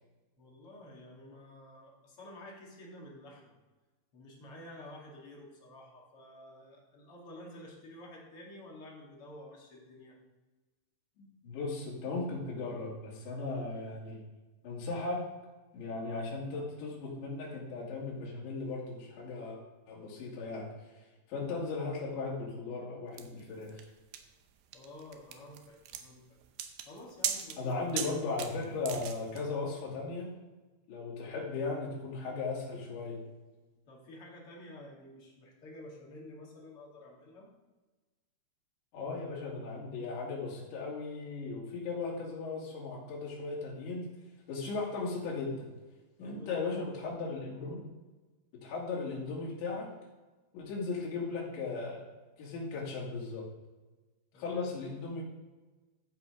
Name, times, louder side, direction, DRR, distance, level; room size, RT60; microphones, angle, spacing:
voice 1, 0.4-3.6 4.1-10.2 24.7-26.2 26.9-27.9 33.9-37.5 46.2-47.0 54.3-54.7, left 1 dB, 40° left, -3 dB, 2.3 m, -50 dB
voice 2, 11.2-14.2 14.6-15.2 15.7-19.6 19.9-20.7 21.3-23.9 27.6-30.3 30.9-33.2 38.9-44.1 44.5-45.7 46.2-47.8 48.6-49.9 50.5-52.1 52.4-53.4 54.4-55.2, left 3 dB, 80° left, -5 dB, 4.6 m, -37 dB
sound 1, 23.2-29.4, right 9 dB, 80° right, 2.1 m, -39 dB
14.0 x 5.3 x 4.9 m, 1.2 s
omnidirectional pair, 5.1 m